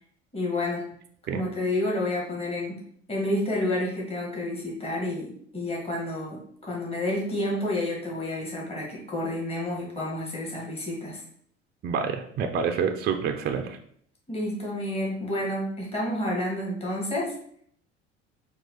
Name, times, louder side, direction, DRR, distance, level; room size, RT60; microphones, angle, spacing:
voice 1, 0.3-0.8 1.3-2.8 3.1-11.2 14.3-17.3, left 1 dB, 20° left, -3 dB, 1.7 m, -29 dB
voice 2, 11.8-13.8, right 6 dB, 30° right, 6 dB, 0.5 m, -27 dB
4.6 x 2.4 x 3.9 m, 0.63 s
hypercardioid pair, 65°, 32 cm